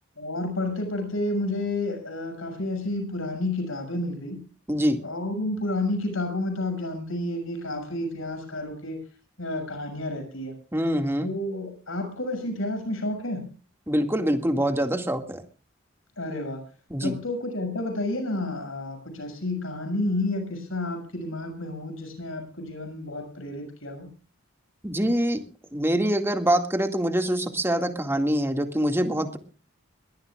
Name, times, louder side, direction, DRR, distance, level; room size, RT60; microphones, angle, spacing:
voice 1, 0.2-4.4 5.0-9.0 9.4-10.5 11.2-13.5 16.2-16.6 17.0-24.1, left 2 dB, 80° left, 5 dB, 6.7 m, -30 dB
voice 2, 4.7-5.0 10.7-11.3 13.9-15.4 16.9-17.2 24.8-25.4 25.7-29.4, equal, 10° right, 5 dB, 2.1 m, -24 dB
23.0 x 18.5 x 2.5 m, 0.39 s
head